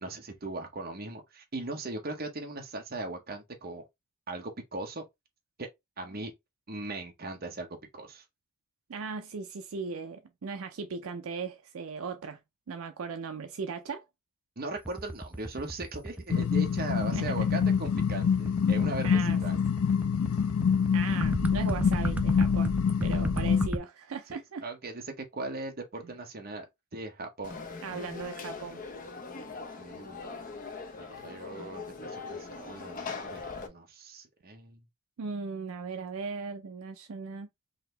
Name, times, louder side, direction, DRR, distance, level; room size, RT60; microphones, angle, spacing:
voice 1, 0.0-3.8 4.3-5.0 5.6-5.7 6.0-6.3 6.7-8.2 14.6-19.6 24.3-26.7 26.9-27.6 29.8-30.4 31.0-34.8, right 2 dB, 45° right, 1.0 m, -39 dB
voice 2, 8.9-12.4 12.7-14.0 17.1-17.6 19.0-19.4 20.9-22.7 23.0-24.6 27.8-28.8 35.2-37.5, right 5 dB, 70° right, 0.4 m, -38 dB
sound 1, 14.8-23.8, right 1 dB, 5° right, 0.4 m, -34 dB
sound 2, 16.3-23.7, left 7 dB, 70° left, 0.4 m, -26 dB
Conversation / Crowd, 27.4-33.7, left 4 dB, 40° left, 0.7 m, -41 dB
4.0 x 2.8 x 3.2 m
head